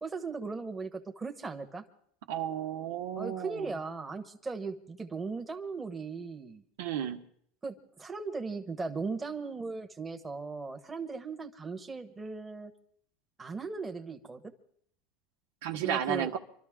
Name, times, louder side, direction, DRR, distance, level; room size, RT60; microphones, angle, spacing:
voice 1, 0.0-1.8 3.2-6.6 7.6-12.7 13.4-14.5 15.8-16.3, right 4 dB, 15° right, 4 dB, 1.3 m, -38 dB
voice 2, 2.3-3.7 6.8-7.2 15.6-16.4, right 9 dB, 80° right, 4 dB, 1.4 m, -33 dB
25.5 x 12.5 x 3.7 m, 0.63 s
supercardioid pair, 130°, 0 cm